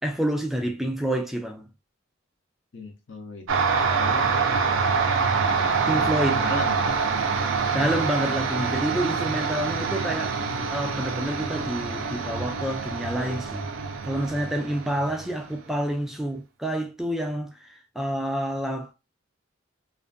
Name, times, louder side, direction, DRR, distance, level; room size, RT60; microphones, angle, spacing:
voice 1, 0.0-1.7 5.9-6.4 7.7-13.7 14.1-18.9, right 1 dB, ahead, 0.3 m, -28 dB
voice 2, 2.7-3.5 3.8-4.3 5.5-7.0, left 2 dB, 65° left, 0.7 m, -37 dB
sound 1, 3.5-15.6, right 5 dB, 75° right, 0.5 m, -26 dB
2.5 x 2.5 x 2.2 m
head